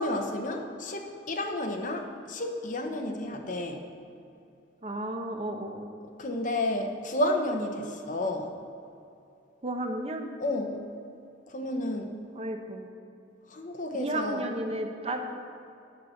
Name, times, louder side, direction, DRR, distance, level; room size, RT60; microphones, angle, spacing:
voice 1, 0.0-3.9 6.2-8.5 10.4-10.8 11.5-12.1 13.5-14.5, left 1 dB, 45° left, 4 dB, 1.0 m, -31 dB
voice 2, 4.8-5.9 9.6-10.3 12.3-12.9 13.9-15.2, right 1 dB, 35° right, 4 dB, 0.8 m, -33 dB
9.3 x 7.5 x 6.4 m, 2.7 s
head